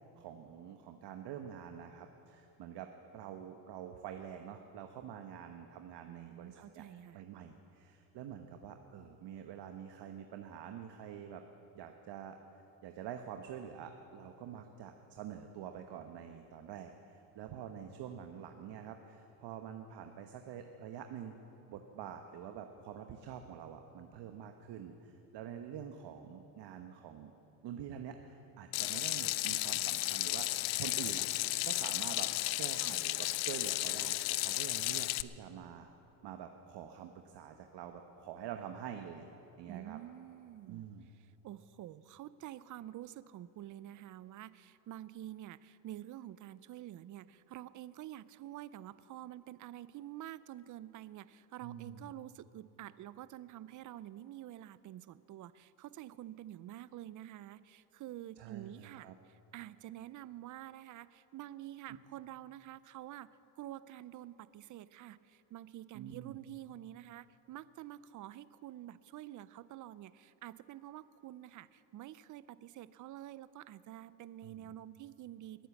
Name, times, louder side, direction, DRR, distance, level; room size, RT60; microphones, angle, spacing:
voice 1, 0.2-6.8 7.1-11.4 11.7-21.3 21.7-27.3 27.6-31.3 31.6-32.3 32.6-35.9 36.2-39.3 39.6-40.0 40.7-41.1 51.6-52.1 58.4-59.1 65.9-66.4 74.4-74.6, right 8 dB, 55° right, 5 dB, 1.1 m, -47 dB
voice 2, 6.1-7.2 32.7-33.0 39.6-40.9 41.4-63.3 63.6-75.7, right 13 dB, 40° right, 17 dB, 0.5 m, -48 dB
Water tap faucet / Sink (filling or washing), 28.7-35.2, left 19 dB, 65° left, 0.6 m, -34 dB
21.0 x 9.4 x 7.1 m, 3.0 s
supercardioid pair, 100°, 49 cm